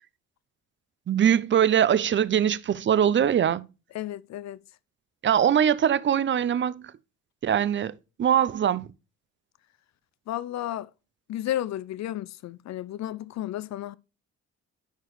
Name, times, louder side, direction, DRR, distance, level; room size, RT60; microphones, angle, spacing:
voice 1, 1.1-3.6 5.2-6.9 7.4-7.9 8.2-8.9, right 9 dB, 40° right, 0.6 m, -22 dB
voice 2, 3.9-4.6 10.3-10.9 11.3-13.9, left 13 dB, 65° left, 0.5 m, -32 dB
10.0 x 4.8 x 3.1 m
cardioid pair, 90°, 30 cm